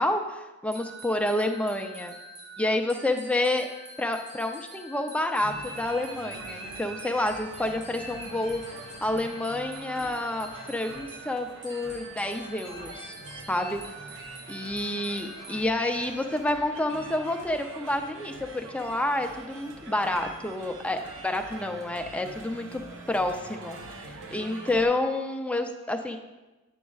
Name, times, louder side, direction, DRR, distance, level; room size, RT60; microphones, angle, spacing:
voice 1, 0.0-2.1 2.6-3.7 4.0-13.2 13.5-13.8 14.5-22.8 23.1-26.2, left 1 dB, 5° left, 5 dB, 0.4 m, -29 dB
sound 1, 0.7-15.6, right 2 dB, 80° right, 1.2 m, -46 dB
sound 2, 5.4-24.9, right 2 dB, 60° right, 0.7 m, -43 dB
9.0 x 6.1 x 2.4 m, 1.1 s
head